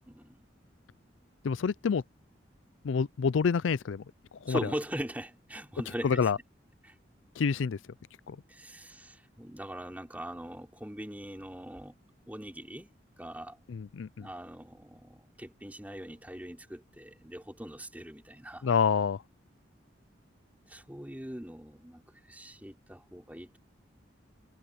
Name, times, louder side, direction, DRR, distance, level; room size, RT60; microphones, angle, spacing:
voice 1, 1.4-2.0 2.8-4.0 4.4-4.7 6.0-6.4 7.4-7.8 8.3-8.4 13.7-14.3 18.6-19.2, left 6 dB, 85° left, 0.4 m, -27 dB
voice 2, 4.5-6.3 6.8-6.9 8.5-12.0 12.3-12.9 13.2-13.6 14.2-18.8 20.7-22.0 22.3-23.6, equal, 10° right, 3.7 m, -41 dB
head